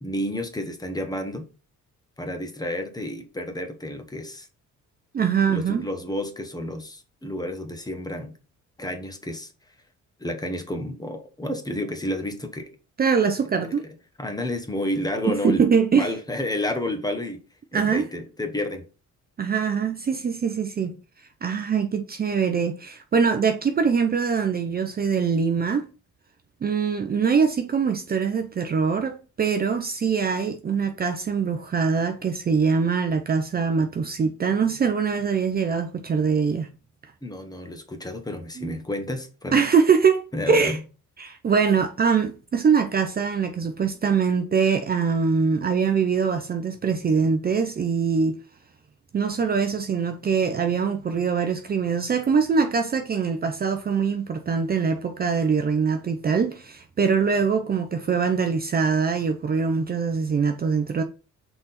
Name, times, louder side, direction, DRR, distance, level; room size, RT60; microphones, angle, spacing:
voice 1, 0.0-1.4 2.2-4.5 5.5-8.3 8.8-9.5 10.2-12.7 14.2-15.6 16.0-17.4 17.7-18.9 37.2-39.6 40.3-40.8, left 1 dB, 15° left, 1.1 m, -30 dB
voice 2, 5.1-5.9 13.0-13.8 15.3-16.1 17.7-18.1 19.4-21.0 21.4-25.8 26.6-36.7 38.6-38.8 39.5-40.8 41.2-48.4 49.1-61.0, right 6 dB, 30° right, 0.6 m, -23 dB
5.9 x 4.0 x 4.2 m
cardioid pair, 135°, 30 cm